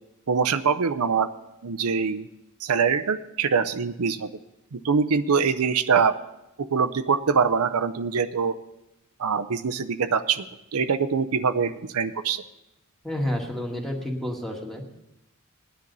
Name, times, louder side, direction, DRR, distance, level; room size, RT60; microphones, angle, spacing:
voice 1, 0.3-1.3 1.6-2.3 2.6-4.3 4.7-6.2 6.6-8.5 9.2-10.5 10.7-12.4, right 6 dB, 85° right, 11 dB, 0.6 m, -23 dB
voice 2, 13.0-14.8, left 1 dB, ahead, 0 dB, 1.7 m, -30 dB
19.0 x 10.0 x 4.0 m, 0.90 s
head